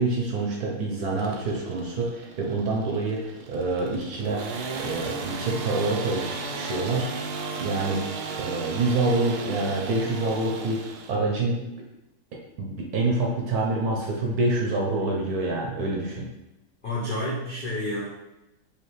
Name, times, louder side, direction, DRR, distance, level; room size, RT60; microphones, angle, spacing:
voice 1, 0.0-4.4 4.8-8.0 8.4-10.8 11.1-11.7 12.6-16.3, right 2 dB, 65° right, -1 dB, 1.0 m, -27 dB
sound 1, 1.2-11.2, right 4 dB, 85° right, 1.4 m, -35 dB
voice 2, 16.8-18.0, left 1 dB, 75° left, -7 dB, 0.4 m, -29 dB
4.9 x 2.8 x 3.2 m, 0.93 s
omnidirectional pair, 2.2 m